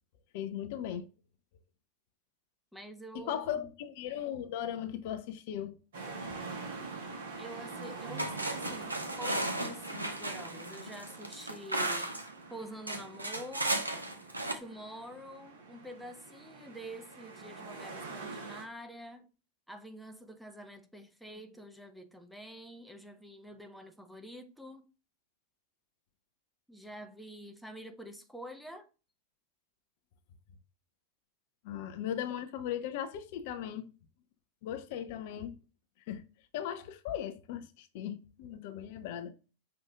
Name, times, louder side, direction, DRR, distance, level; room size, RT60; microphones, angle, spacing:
voice 1, 0.3-1.1 3.1-5.7 31.6-33.9 34.6-35.5 36.1-36.2 36.5-39.3, left 10 dB, 50° left, 0.5 m, -37 dB
voice 2, 2.7-3.7 7.4-12.1 12.5-13.8 14.5-19.3 19.7-24.9 26.7-28.9, right 1 dB, ahead, 0.5 m, -47 dB
sound 1, 5.9-18.6, right 4 dB, 60° right, 1.3 m, -45 dB
sound 2, 7.7-7.8 8.2-12.3 12.9-14.5, right 1 dB, 80° right, 0.7 m, -35 dB
5.6 x 2.6 x 3.5 m
figure-of-eight pair, 90°, 0 cm